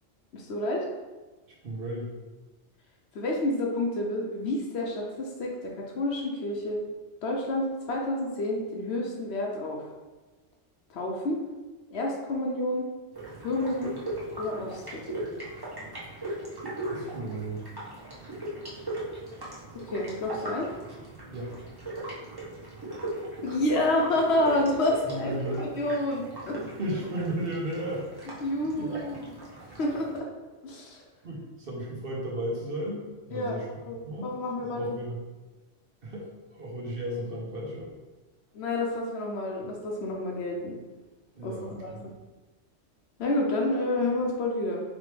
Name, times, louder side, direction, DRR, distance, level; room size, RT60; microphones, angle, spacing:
voice 1, 0.3-0.8 3.1-6.8 7.2-9.8 10.9-11.4 11.9-12.9 13.4-13.9 14.4-15.2 19.8-20.7 23.4-26.6 28.4-29.3 29.8-30.3 30.6-31.0 33.3-33.6 33.9-35.0 38.5-40.7 41.4-42.1 43.2-44.8, left 1 dB, 65° left, 0 dB, 0.9 m, -29 dB
voice 2, 1.6-2.1 16.8-17.7 21.3-21.5 25.1-25.6 26.8-28.0 28.7-29.0 31.2-33.6 34.0-35.2 36.0-37.9 41.4-42.1, right 1 dB, 50° right, -3 dB, 1.0 m, -34 dB
sound 1, 13.1-30.2, right 1 dB, 20° right, 0.9 m, -39 dB
4.1 x 3.1 x 3.2 m, 1.2 s
omnidirectional pair, 1.3 m